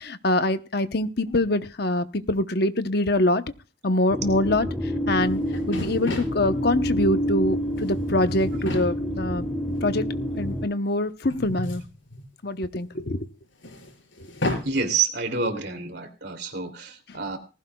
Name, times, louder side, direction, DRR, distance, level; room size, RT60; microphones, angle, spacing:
voice 1, 0.0-3.4 3.8-4.7 5.1-5.4 5.7-9.4 9.8-10.1 10.4-11.8 12.4-13.3 14.4-14.6 17.1-17.2, left 1 dB, 50° left, 10 dB, 1.0 m, -24 dB
sound 1, 4.1-10.7, equal, 5° left, 1.5 m, -28 dB
sound 2, 5.2-5.3 5.5-6.4 7.5-7.9 8.3-8.9 9.7-9.8 11.3-12.6 13.6-14.7, left 1 dB, 70° left, 5.8 m, -32 dB
voice 2, 14.6-17.4, right 5 dB, 55° right, 6 dB, 2.8 m, -28 dB
19.0 x 16.0 x 2.3 m, 0.33 s
head